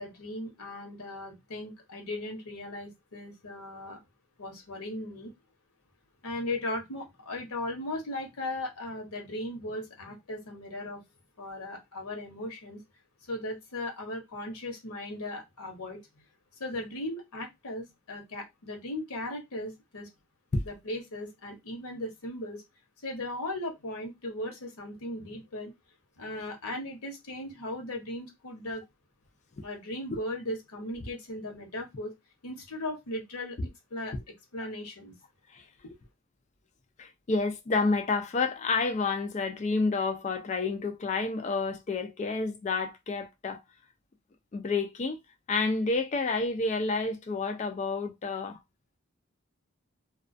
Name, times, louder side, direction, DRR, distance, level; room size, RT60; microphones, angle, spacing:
voice 1, 0.0-4.0 4.4-5.3 6.2-11.0 11.4-12.8 13.3-16.2 16.6-20.1 20.6-22.6 23.0-25.7 26.2-28.8 29.6-32.1 32.4-33.6 33.9-34.1 34.5-35.1, left 1 dB, 90° left, 0.9 m, -37 dB
voice 2, 37.0-43.6 44.5-45.2 45.5-48.6, left 3 dB, 35° left, 0.3 m, -29 dB
2.3 x 2.2 x 2.5 m
head